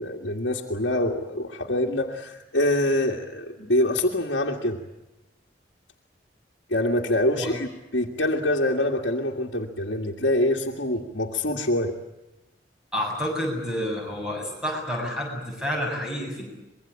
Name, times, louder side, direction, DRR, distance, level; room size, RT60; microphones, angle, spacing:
voice 1, 0.0-4.8 6.7-11.9, left 1 dB, 65° left, -1 dB, 2.0 m, -25 dB
voice 2, 12.9-16.5, equal, 5° right, 0 dB, 7.6 m, -29 dB
25.0 x 22.5 x 8.5 m, 0.98 s
head